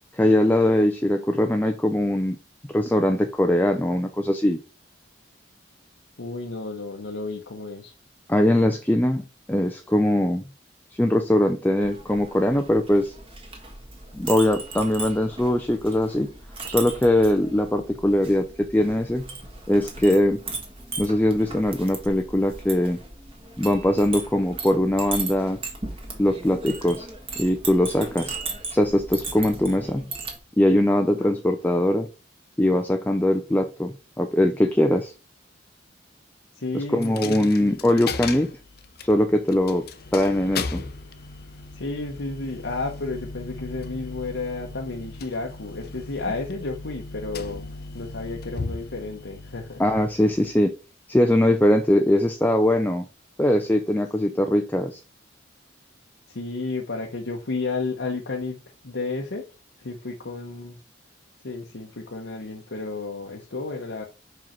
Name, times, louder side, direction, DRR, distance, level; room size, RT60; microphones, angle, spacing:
voice 1, 0.1-2.4 2.7-4.6 8.3-9.2 9.5-10.4 11.0-13.1 14.1-16.3 16.7-19.3 19.7-20.4 21.0-23.0 23.6-25.6 26.2-27.1 27.4-28.4 28.7-30.1 30.6-32.1 32.6-35.1 36.7-38.5 39.0-39.9 40.1-40.8 49.8-50.8 51.1-53.0 53.4-55.0, left 1 dB, 10° left, 0.4 m, -21 dB
voice 2, 6.2-7.9 31.2-31.3 36.5-37.8 41.7-49.8 54.4-54.5 56.3-58.6 58.8-59.4 59.8-60.8 61.4-64.0, left 3 dB, 80° left, 1.0 m, -32 dB
Chink clink, 11.8-30.4, right 3 dB, 30° right, 1.5 m, -37 dB
Coin (dropping), 37.0-50.7, left 4 dB, 55° left, 0.6 m, -37 dB
5.5 x 5.0 x 4.4 m
head